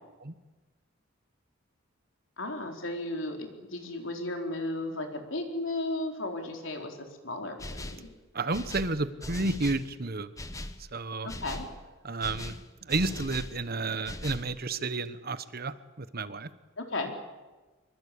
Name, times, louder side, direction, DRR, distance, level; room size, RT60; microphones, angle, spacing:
voice 1, 2.4-8.1 11.2-11.7 16.8-17.1, left 2 dB, 75° left, 3 dB, 4.3 m, -35 dB
sound 1, 7.6-8.1 8.5-9.9 10.4-10.8 11.3-11.7 12.2-13.6 14.0-14.5, left 1 dB, 15° left, 1.3 m, -39 dB
voice 2, 8.3-10.3 10.9-11.3 12.0-12.6 12.8-16.5, right 3 dB, 50° right, 13 dB, 1.2 m, -31 dB
25.0 x 23.5 x 8.6 m, 1.2 s
head